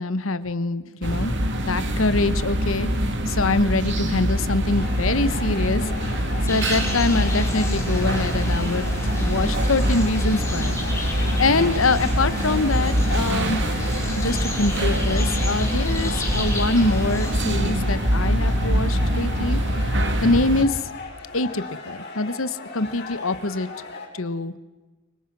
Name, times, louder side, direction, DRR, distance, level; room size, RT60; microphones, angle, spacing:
voice 1, 0.0-1.3 1.7-2.9 3.3-8.9 9.2-13.6 14.2-19.6 20.2-20.8 21.3-23.7 24.1-24.5, left 3 dB, 75° left, 13 dB, 1.2 m, -24 dB
sound 1, 1.0-20.6, equal, 60° right, 2.9 m, -24 dB
sound 2, 4.8-24.1, left 3 dB, 55° left, 6.1 m, -38 dB
sound 3, 6.5-17.3, left 3 dB, 15° left, 5.0 m, -34 dB
29.0 x 25.0 x 6.1 m, 1.2 s
head